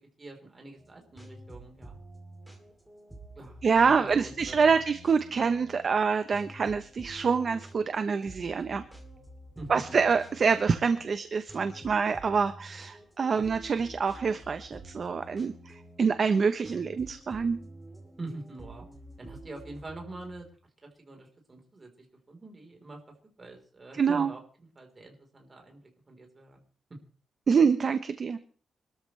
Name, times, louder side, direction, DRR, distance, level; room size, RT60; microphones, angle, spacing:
voice 1, 0.0-2.0 3.4-4.8 9.6-9.7 18.2-18.9 19.2-20.5 20.8-23.0 23.4-26.6, right 2 dB, 20° right, 1 dB, 3.7 m, -45 dB
sound 1, 0.8-20.4, right 1 dB, ahead, 2.6 m, -49 dB
voice 2, 3.6-8.9 9.7-17.6 24.0-24.3 27.5-28.4, right 5 dB, 35° right, 10 dB, 0.8 m, -26 dB
25.0 x 13.0 x 3.2 m, 0.42 s
wide cardioid pair, 175°, 0 cm